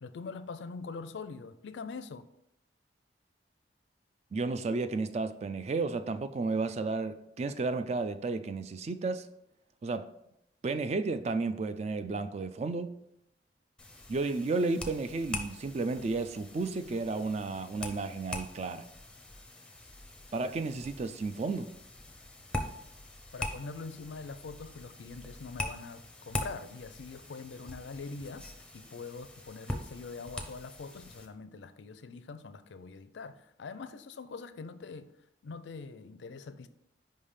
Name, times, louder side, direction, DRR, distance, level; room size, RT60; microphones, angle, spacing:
voice 1, 0.0-2.3 23.3-35.1 35.4-36.7, left 4 dB, 80° left, 0.4 m, -43 dB
voice 2, 4.3-9.3 9.8-10.1 10.6-12.9 14.1-18.8 20.3-21.7, right 3 dB, 35° right, 0.3 m, -32 dB
sound 1, 13.8-31.3, left 2 dB, 5° left, 0.6 m, -43 dB
5.3 x 3.4 x 5.5 m
head